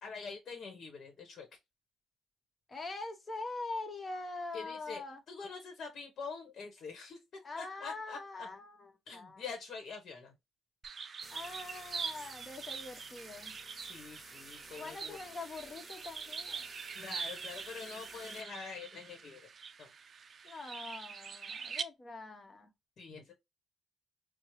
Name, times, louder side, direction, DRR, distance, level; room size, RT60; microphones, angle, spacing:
voice 1, 0.0-1.5 4.5-7.2 7.5-8.5 9.1-10.3 13.8-15.2 16.9-19.5 19.8-19.9 23.0-23.3, left 5 dB, 60° left, 1.0 m, -45 dB
voice 2, 2.7-5.2 7.4-9.4 11.3-13.6 14.8-16.7 20.4-22.7, left 3 dB, 35° left, 0.9 m, -43 dB
sound 1, 10.8-21.8, right 5 dB, 45° right, 0.4 m, -44 dB
sound 2, 11.2-18.4, right 1 dB, 15° right, 1.0 m, -53 dB
4.4 x 2.0 x 3.0 m
cardioid pair, 90°, 0 cm